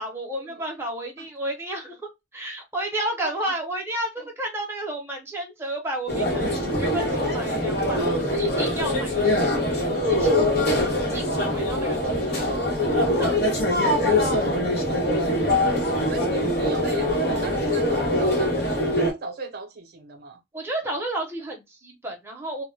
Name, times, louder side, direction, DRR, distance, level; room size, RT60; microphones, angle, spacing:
voice 1, 0.0-2.0 2.3-9.3 10.1-10.6 11.1-12.5 12.9-13.4 20.5-22.6, right 1 dB, 15° right, 0.7 m, -32 dB
voice 2, 3.2-3.5 7.9-8.2 12.0-12.6 13.8-14.3 14.7-15.4 16.1-20.4, right 3 dB, 55° right, 0.5 m, -36 dB
sound 1, 6.1-19.1, left 1 dB, 60° left, 1.0 m, -23 dB
2.2 x 2.1 x 3.1 m
head